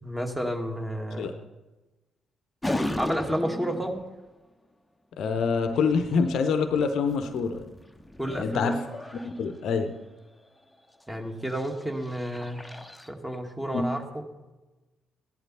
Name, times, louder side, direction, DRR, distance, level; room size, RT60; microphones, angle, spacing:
voice 1, 0.0-1.3 3.0-4.0 8.2-8.7 11.1-12.7 13.1-14.2, equal, 10° right, 3 dB, 1.9 m, -31 dB
sound 1, 2.6-4.2 5.6-10.0 10.8-11.0 11.4-13.1, left 1 dB, 10° left, 1.0 m, -36 dB
voice 2, 5.2-7.6 8.3-8.8 9.2-9.9 13.7-13.9, left 5 dB, 60° left, 9 dB, 0.8 m, -26 dB
15.0 x 11.0 x 4.2 m, 1.1 s
figure-of-eight pair, 40°, 0 cm